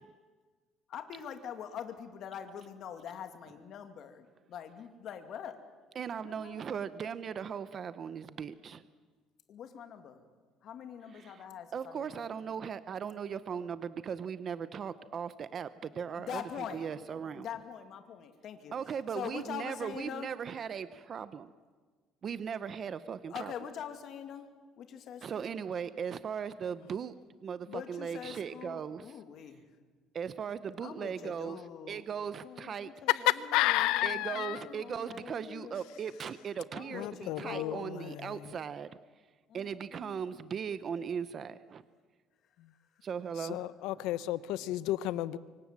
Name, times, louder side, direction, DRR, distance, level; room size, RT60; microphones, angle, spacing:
voice 1, 0.9-5.6 6.2-7.0 9.5-10.2 10.6-12.3 16.2-16.9 17.4-18.7 19.1-20.3 23.3-24.5 24.8-25.5 27.7-29.7 30.8-32.0 32.4-35.8 36.7-38.2 39.5-40.2, left 8 dB, 50° left, 7 dB, 2.5 m, -44 dB
voice 2, 5.9-8.8 11.1-17.5 18.7-21.5 22.2-23.5 25.2-27.1 27.4-29.2 30.1-31.6 31.9-32.9 34.0-38.9 39.5-41.8 43.0-43.6 44.1-44.2, right 7 dB, 35° right, 13 dB, 0.8 m, -38 dB
voice 3, 33.3-34.6 36.9-38.3 43.5-45.4, left 16 dB, 80° left, 16 dB, 0.9 m, -31 dB
25.5 x 24.5 x 7.6 m, 1.4 s
cardioid pair, 140°, 0 cm